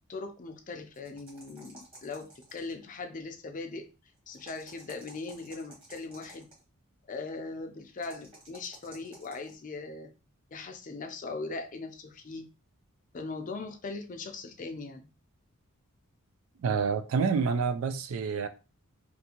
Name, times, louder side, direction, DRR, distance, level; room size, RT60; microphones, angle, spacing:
voice 1, 0.1-3.9 4.3-6.5 7.1-10.1 10.5-12.5 13.1-15.1, left 3 dB, 35° left, 0.4 m, -40 dB
sound 1, 0.9-2.8 4.3-6.6 8.0-9.5, right 1 dB, 25° right, 1.3 m, -53 dB
voice 2, 16.6-18.5, right 5 dB, 65° right, 0.3 m, -28 dB
2.6 x 2.5 x 2.8 m
head